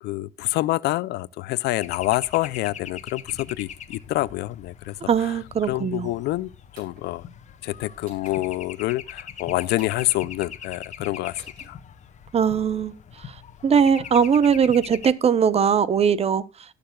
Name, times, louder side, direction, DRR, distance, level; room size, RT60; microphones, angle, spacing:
voice 1, 0.0-4.9 5.7-7.2 7.6-11.4 11.7-11.8, left 18 dB, 80° left, 0.5 m, -27 dB
sound 1, 1.8-15.1, left 8 dB, 45° left, 1.2 m, -42 dB
voice 2, 5.1-6.1 12.3-12.9 13.3-13.4 13.6-16.4, right 7 dB, 35° right, 0.9 m, -20 dB
sound 2, 6.7-7.1 8.0-8.4 9.7-10.1 11.4-11.7, right 3 dB, 55° right, 5.6 m, -50 dB
19.0 x 6.8 x 2.3 m
cardioid pair, 110°, 17 cm